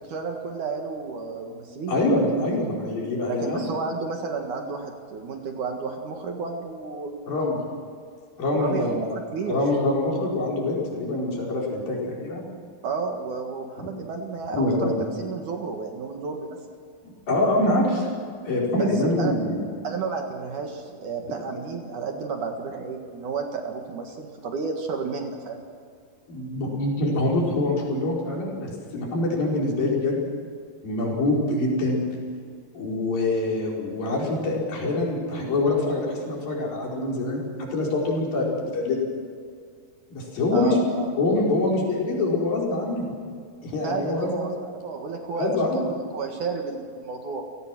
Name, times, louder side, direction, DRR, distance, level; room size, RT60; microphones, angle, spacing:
voice 1, 0.1-2.0 3.3-7.1 8.4-9.6 12.8-16.6 18.7-19.3 19.8-25.7 40.5-41.1 43.8-47.4, right 4 dB, 55° right, 3 dB, 2.9 m, -32 dB
voice 2, 1.9-3.6 7.3-7.6 8.4-9.1 9.5-12.4 14.6-15.0 17.0-18.1 18.4-19.7 26.3-30.2 30.8-32.0 32.7-39.0 40.1-40.8 41.2-43.1 43.6-44.5 45.4-45.9, left 2 dB, 60° left, -3 dB, 6.5 m, -25 dB
30.0 x 18.0 x 6.2 m, 2.2 s
omnidirectional pair, 4.6 m